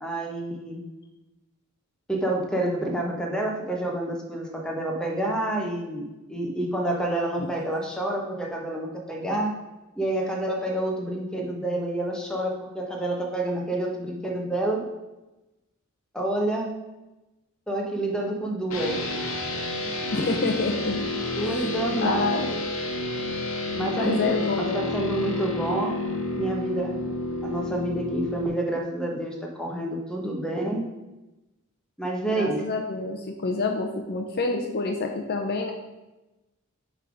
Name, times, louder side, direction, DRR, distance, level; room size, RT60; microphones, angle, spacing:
voice 1, 0.0-0.8 2.1-9.5 10.0-14.8 16.1-16.7 17.7-19.0 21.4-22.6 23.7-25.9 26.3-26.9 27.4-30.9 32.0-32.6, right 1 dB, 5° left, 0 dB, 1.0 m, -28 dB
sound 1, 18.7-28.5, left 2 dB, 65° left, 1.1 m, -30 dB
voice 2, 20.1-21.0 21.6-21.7 22.0-22.5 23.9-24.9 32.3-35.7, left 3 dB, 50° left, 2 dB, 0.6 m, -27 dB
7.4 x 3.5 x 5.0 m, 1.0 s
head